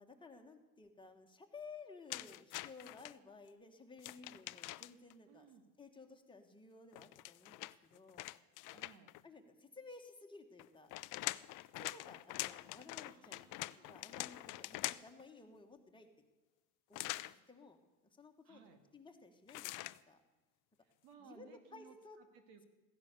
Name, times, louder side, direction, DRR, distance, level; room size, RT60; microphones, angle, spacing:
voice 1, 0.0-5.5 5.8-8.3 8.7-8.8 9.2-10.9 11.8-13.5 13.7-16.1 16.9-17.8 18.2-18.6 18.9-20.2 21.2-22.2, left 4 dB, 10° left, 3 dB, 1.6 m, -56 dB
Handling Paper and flapping it, 2.1-3.1 4.0-5.1 6.9-9.2 10.6-15.2 16.9-17.3 19.5-20.0, left 19 dB, 45° left, 0.4 m, -44 dB
voice 2, 5.3-5.7 8.6-9.1 13.0-14.0 18.4-18.8 20.8-22.7, right 7 dB, 75° right, 7 dB, 2.2 m, -61 dB
15.5 x 10.5 x 6.8 m, 1.1 s
supercardioid pair, 115°, 44 cm